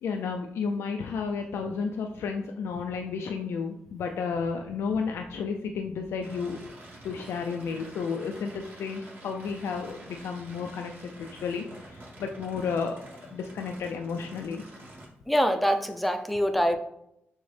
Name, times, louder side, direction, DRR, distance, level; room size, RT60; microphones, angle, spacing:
voice 1, 0.0-6.6 7.0-13.0 13.3-14.6, left 5 dB, 80° left, 3 dB, 0.3 m, -32 dB
sound 1, 6.2-15.1, right 1 dB, 50° right, 1.4 m, -48 dB
voice 2, 15.3-16.8, equal, ahead, 6 dB, 0.5 m, -24 dB
6.2 x 2.1 x 3.3 m, 0.79 s
cardioid pair, 90°, 4 cm